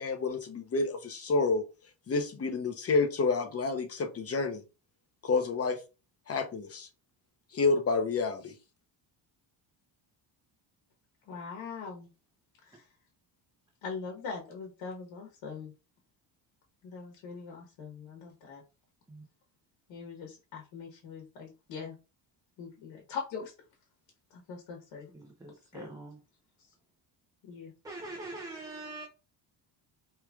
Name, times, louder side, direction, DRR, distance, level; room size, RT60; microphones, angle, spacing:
voice 1, 0.0-1.6 2.1-4.6 5.2-5.8 6.3-6.9 7.5-8.5, left 4 dB, 30° left, 0.8 m, -29 dB
voice 2, 11.3-12.1 12.6-12.9 13.8-15.7 16.8-18.6 19.9-21.9 22.6-23.5 24.3-25.1 25.7-25.9 27.4-27.7, left 5 dB, 80° left, 1.2 m, -42 dB
voice 3, 25.1-26.2 27.8-29.1, right 2 dB, 10° right, 0.7 m, -43 dB
4.7 x 3.1 x 2.3 m
cardioid pair, 125°, 46 cm